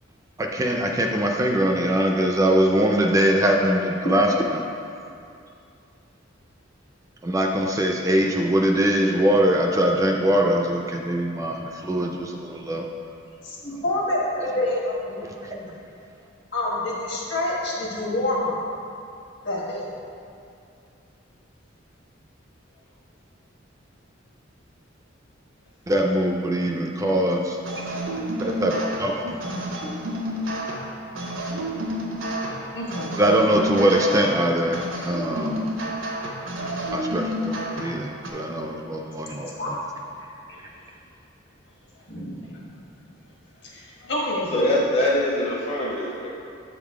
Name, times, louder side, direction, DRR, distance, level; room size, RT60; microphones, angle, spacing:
voice 1, 0.4-4.3 4.5-4.7 7.2-12.8 15.2-15.3 25.9-27.6 28.4-29.4 33.2-35.6 36.9-39.8, right 1 dB, 15° right, 1 dB, 0.3 m, -22 dB
voice 2, 13.4-15.7 16.5-18.6 19.4-19.8 29.2-29.6 32.6-33.2 39.6-39.7 42.1-42.6 43.0-43.1 43.6-44.5, left 1 dB, 60° left, -4 dB, 1.4 m, -28 dB
sound 1, 27.6-38.3, equal, 90° right, 0.9 m, -30 dB
voice 3, 44.5-46.3, left 1 dB, 30° left, -5 dB, 0.7 m, -23 dB
7.0 x 3.7 x 4.7 m, 2.5 s
head